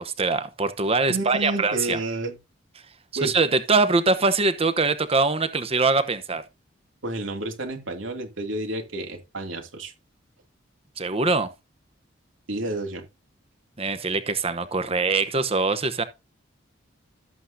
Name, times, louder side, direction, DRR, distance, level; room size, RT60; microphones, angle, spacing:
voice 1, 0.0-2.0 3.2-6.4 11.0-11.5 13.8-16.0, right 3 dB, 30° right, 0.9 m, -23 dB
voice 2, 1.1-2.4 3.2-3.3 7.0-9.9 12.5-13.0, right 1 dB, 85° right, 2.7 m, -30 dB
13.0 x 8.2 x 2.7 m
head